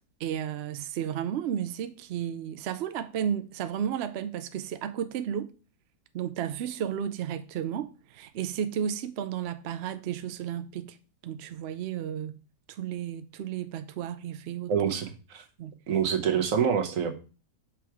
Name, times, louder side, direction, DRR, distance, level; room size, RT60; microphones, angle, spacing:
voice 1, 0.2-5.5 6.1-11.0 11.2-12.3 12.7-14.7 15.6-15.7, right 9 dB, 75° right, 0.5 m, -33 dB
voice 2, 14.7-15.4 15.9-17.1, right 7 dB, 60° right, 1.2 m, -26 dB
6.0 x 4.7 x 4.6 m
omnidirectional pair, 1.7 m